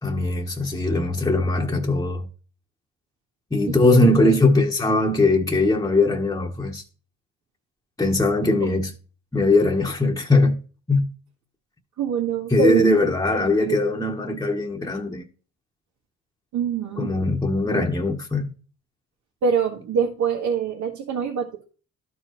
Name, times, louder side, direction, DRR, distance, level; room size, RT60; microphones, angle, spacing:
voice 1, 0.0-2.3 3.5-6.8 8.0-8.9 9.3-10.6 10.9-11.1 12.5-15.3 17.0-18.5, left 2 dB, 10° left, 1.1 m, -20 dB
voice 2, 3.7-4.3 8.6-8.7 12.0-13.0 13.6-13.8 16.5-17.1 19.4-21.6, right 6 dB, 75° right, 1.4 m, -24 dB
12.5 x 4.6 x 3.1 m
cardioid pair, 90°, 30 cm